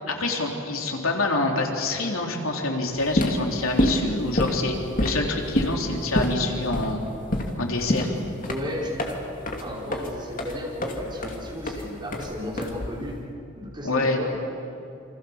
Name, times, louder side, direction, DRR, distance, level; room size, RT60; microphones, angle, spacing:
voice 1, 0.1-7.0 7.6-8.1 13.8-14.2, left 2 dB, 80° left, 1 dB, 3.4 m, -26 dB
sound 1, 3.0-13.2, left 1 dB, 40° left, 2.7 m, -27 dB
voice 2, 8.5-9.2 9.6-13.3 13.5-14.3, left 1 dB, 20° right, -4 dB, 5.3 m, -34 dB
28.5 x 26.0 x 7.2 m, 3.0 s
head